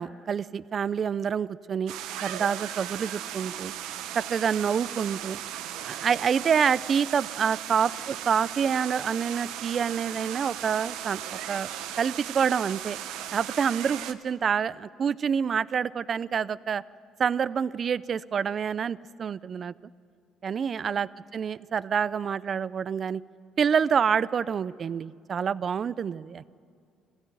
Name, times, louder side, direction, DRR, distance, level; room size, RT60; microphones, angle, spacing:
voice 1, 0.0-1.9 2.2-3.7 4.1-5.4 5.8-11.7 12.0-13.0 13.3-16.8 17.2-19.7 20.4-23.2 23.6-26.5, right 7 dB, 35° right, 18 dB, 0.5 m, -27 dB
sound 1, 1.9-14.1, right 11 dB, 85° right, 1.0 m, -37 dB
21.5 x 15.5 x 9.3 m, 2.3 s
cardioid pair, 135°, 0 cm